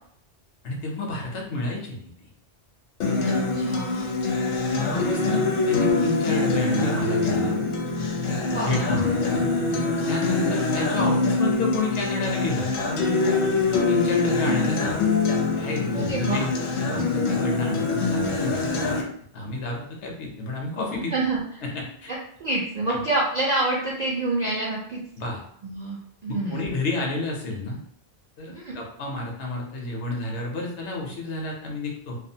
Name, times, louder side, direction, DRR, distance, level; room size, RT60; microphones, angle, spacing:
voice 1, 0.6-2.3 4.7-7.5 8.6-9.4 10.1-12.7 13.7-15.0 15.6-16.5 16.8-19.1 19.3-21.1 21.6-22.1 22.9-23.0 25.2-25.4 26.3-27.8 28.4-32.2, left 2 dB, 90° left, 0 dB, 1.0 m, -30 dB
Acoustic guitar, 3.0-19.0, left 3 dB, 60° left, 0.6 m, -24 dB
voice 2, 3.2-4.1 8.5-9.0 15.9-16.5 20.9-21.4 22.1-25.0 25.6-26.6 28.5-28.8, right 2 dB, 55° right, -4 dB, 0.5 m, -27 dB
2.5 x 2.3 x 2.7 m, 0.64 s
omnidirectional pair, 1.1 m